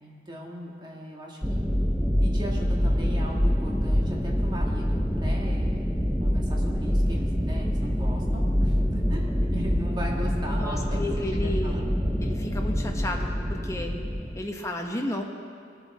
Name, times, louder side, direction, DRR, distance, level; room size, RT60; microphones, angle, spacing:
voice 1, 0.0-1.6 2.2-5.8 6.2-11.0 11.3-11.9, equal, 25° right, -2 dB, 1.6 m, -38 dB
sound 1, 1.4-14.4, equal, ahead, 0.7 m, -25 dB
voice 2, 10.6-11.9 12.2-13.9 14.4-15.2, left 1 dB, 15° left, 1 dB, 1.1 m, -32 dB
21.5 x 7.7 x 4.3 m, 2.2 s
head